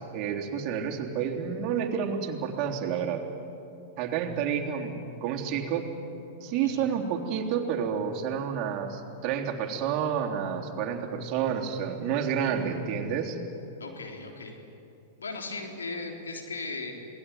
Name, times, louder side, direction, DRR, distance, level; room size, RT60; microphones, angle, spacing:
voice 1, 0.0-3.2 4.0-5.9 6.4-13.4, right 7 dB, 45° right, 2 dB, 3.4 m, -30 dB
voice 2, 13.8-14.5 15.2-16.9, left 3 dB, 85° left, 2 dB, 3.8 m, -37 dB
27.0 x 19.0 x 9.5 m, 2.9 s
hypercardioid pair, 100°, 0 cm